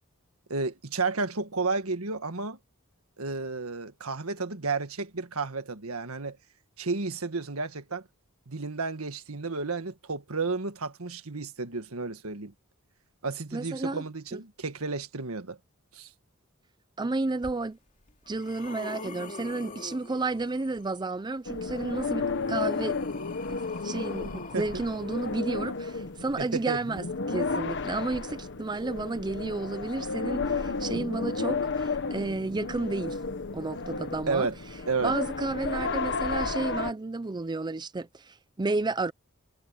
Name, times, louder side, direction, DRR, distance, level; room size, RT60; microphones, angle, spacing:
voice 1, 0.5-2.6 3.2-6.4 6.8-8.0 8.5-12.5 13.2-15.6 15.9-16.1 24.5-24.7 26.4-26.8 34.3-34.6 34.9-35.1, right 4 dB, 80° right, 1.7 m, -32 dB
voice 2, 13.5-14.0 14.3-14.4 17.0-17.8 18.3-23.0 23.8-33.2 33.5-34.5 35.0-39.1, right 3 dB, 20° right, 0.5 m, -32 dB
sound 1, 17.4-17.5 18.1-20.8 22.0-25.9 26.9-27.0, left 3 dB, 40° left, 2.6 m, -45 dB
sound 2, 21.5-36.9, left 4 dB, 60° left, 1.3 m, -32 dB
head